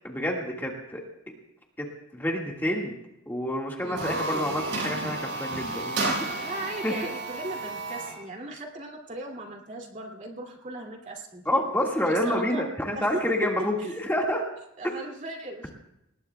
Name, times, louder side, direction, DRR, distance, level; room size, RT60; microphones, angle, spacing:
voice 1, 0.0-1.0 1.8-1.9 2.1-3.0 3.3-6.1 6.8-6.9 11.5-14.4, left 1 dB, 10° left, -1 dB, 1.7 m, -28 dB
voice 2, 3.8-4.6 6.4-11.7 12.1-12.6 13.0-13.9 14.8-15.7, right 1 dB, 35° right, 1 dB, 2.5 m, -37 dB
sound 1, 3.8-8.2, right 2 dB, 60° right, 6.6 m, -32 dB
26.0 x 20.0 x 2.3 m, 0.84 s
head